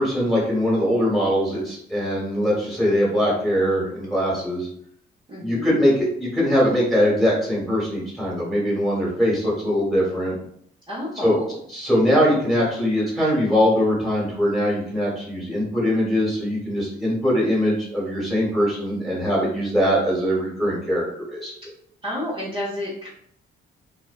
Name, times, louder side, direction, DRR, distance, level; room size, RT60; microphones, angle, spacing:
voice 1, 0.0-4.7 5.4-10.4 11.2-11.3 11.7-21.5, equal, ahead, -6 dB, 1.4 m, -22 dB
voice 2, 5.3-5.9 10.9-11.6 22.0-23.1, left 1 dB, 25° right, -8 dB, 0.9 m, -30 dB
2.5 x 2.2 x 2.4 m, 0.65 s
cardioid pair, 90°, 20 cm